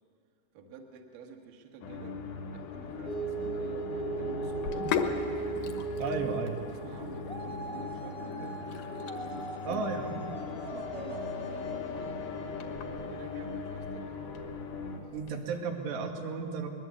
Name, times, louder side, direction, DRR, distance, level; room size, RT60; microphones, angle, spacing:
voice 1, 0.5-2.2 2.5-5.1 6.7-8.6 9.0-9.8 10.5-12.2 12.7-14.2, right 6 dB, 60° right, 3 dB, 2.8 m, -49 dB
sound 1, 1.8-15.0, left 4 dB, 85° left, 3.9 m, -40 dB
sound 2, 3.0-14.0, right 3 dB, 10° left, 0.3 m, -39 dB
Sink (filling or washing), 4.5-15.3, left 7 dB, 65° left, 2.4 m, -40 dB
voice 2, 6.0-6.6 9.7-10.2 15.1-16.7, right 4 dB, 80° right, 2 dB, 3.9 m, -34 dB
23.0 x 20.0 x 8.3 m, 2.5 s
omnidirectional pair, 4.9 m